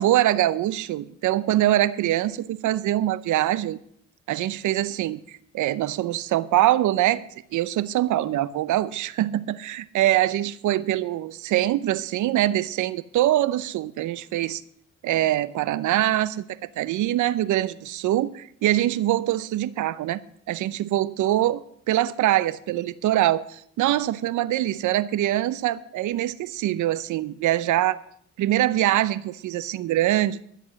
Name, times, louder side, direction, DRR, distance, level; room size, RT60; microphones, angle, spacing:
voice 1, 0.0-3.8 4.3-7.2 7.5-14.6 15.0-20.2 20.5-21.6 21.9-28.0 28.4-30.4, right 13 dB, 80° right, 0.7 m, -23 dB
12.5 x 7.9 x 7.6 m
cardioid pair, 90°, 30 cm